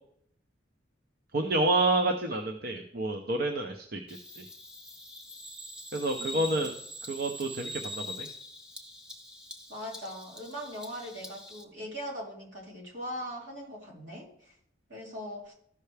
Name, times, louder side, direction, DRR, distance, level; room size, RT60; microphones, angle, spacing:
voice 1, 1.3-4.5 5.9-6.7 7.0-8.3, right 2 dB, 50° right, 4 dB, 0.7 m, -29 dB
Bird vocalization bird call bird song, 4.1-11.6, left 1 dB, 5° right, 0.7 m, -43 dB
voice 2, 6.2-6.6 9.7-14.5 14.9-15.5, equal, 75° right, -3 dB, 3.0 m, -40 dB
13.5 x 5.6 x 3.4 m, 0.67 s
head